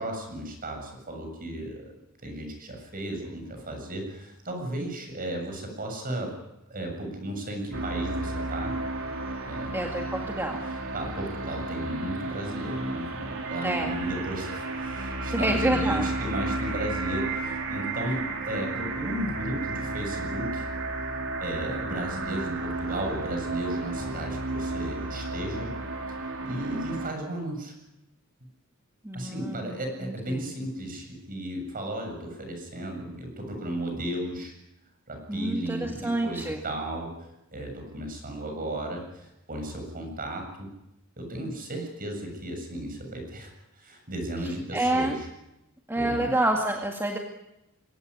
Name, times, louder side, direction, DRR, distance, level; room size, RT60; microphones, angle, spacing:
voice 1, 0.0-1.9 2.2-6.3 6.7-8.7 9.4-9.8 10.9-20.7 21.4-25.7 26.4-27.8 29.1-34.5 35.1-37.1 37.5-40.7 41.2-45.3 46.0-46.3, right 1 dB, 40° right, 4 dB, 7.4 m, -34 dB
sound 1, 7.7-27.1, right 2 dB, 65° right, 3.8 m, -32 dB
voice 2, 9.7-10.6 13.6-14.0 15.3-16.1 21.9-22.6 29.0-30.4 35.3-36.6 44.7-45.2 45.9-47.2, right 1 dB, 10° right, 1 dB, 2.0 m, -28 dB
23.0 x 18.0 x 9.9 m, 0.89 s
head